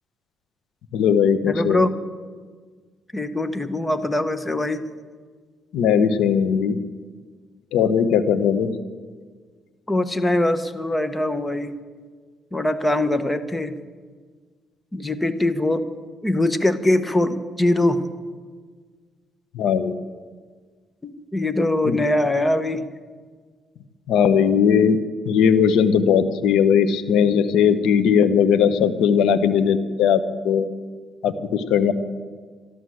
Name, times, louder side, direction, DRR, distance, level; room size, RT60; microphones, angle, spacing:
voice 1, 0.9-1.9 5.7-6.8 7.7-8.7 19.5-20.0 21.8-22.0 24.1-25.0 25.2-30.7 31.2-31.9, left 7 dB, 85° left, 11 dB, 1.0 m, -18 dB
voice 2, 1.5-1.9 3.1-4.8 9.9-11.7 12.5-13.7 14.9-15.8 16.2-18.0 21.0-22.8, left 1 dB, 15° left, 10 dB, 1.2 m, -22 dB
13.0 x 12.5 x 7.8 m, 1.5 s
cardioid pair, 90°, 0 cm